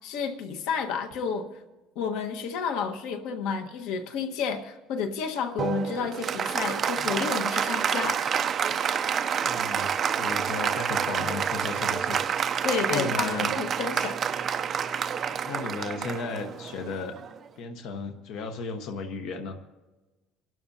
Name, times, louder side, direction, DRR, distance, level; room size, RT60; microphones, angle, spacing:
voice 1, 0.0-1.5 1.9-8.2 12.6-14.2, left 6 dB, 80° left, 5 dB, 1.4 m, -31 dB
Applause, 5.6-17.5, right 7 dB, 30° right, 0.6 m, -28 dB
voice 2, 9.5-12.3 12.9-13.6 15.4-17.1 17.6-19.6, left 4 dB, 60° left, 5 dB, 1.1 m, -35 dB
29.0 x 12.5 x 2.8 m, 1.1 s
cardioid pair, 160°, 0 cm